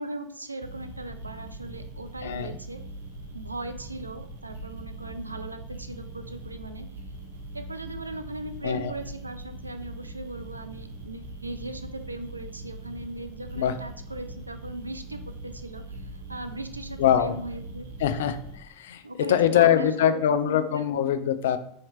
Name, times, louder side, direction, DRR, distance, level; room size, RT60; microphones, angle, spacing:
voice 1, 0.0-2.8 3.3-6.9 7.5-17.9 19.0-20.2 20.5-21.1, right 2 dB, 85° right, 8 dB, 0.3 m, -38 dB
sound 1, 0.6-18.6, right 1 dB, 70° right, 0.8 m, -41 dB
voice 2, 2.2-2.6 8.6-8.9 13.6-13.7 17.0-17.4 18.0-19.0 19.3-21.6, left 10 dB, 65° left, 10 dB, 0.3 m, -23 dB
4.1 x 2.8 x 3.3 m, 0.67 s
figure-of-eight pair, 85°, 0 cm